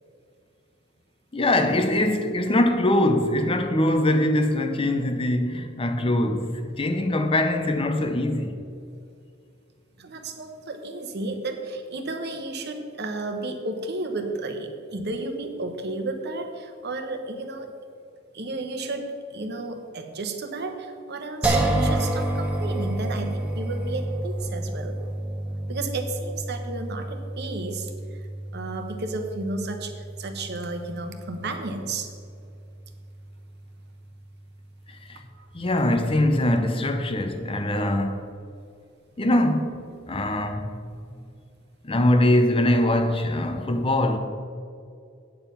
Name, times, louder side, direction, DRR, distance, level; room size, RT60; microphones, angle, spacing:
voice 1, 1.3-8.5 35.1-35.2 35.5-38.3 39.2-40.8 41.8-44.2, left 1 dB, 25° left, 0.7 m, -22 dB
voice 2, 10.0-17.7 18.3-25.0 25.7-27.9 28.5-32.1 35.4-35.5, right 2 dB, 55° right, 1.0 m, -33 dB
sound 1, 21.4-34.5, right 1 dB, 5° right, 1.0 m, -30 dB
9.0 x 7.4 x 5.6 m
head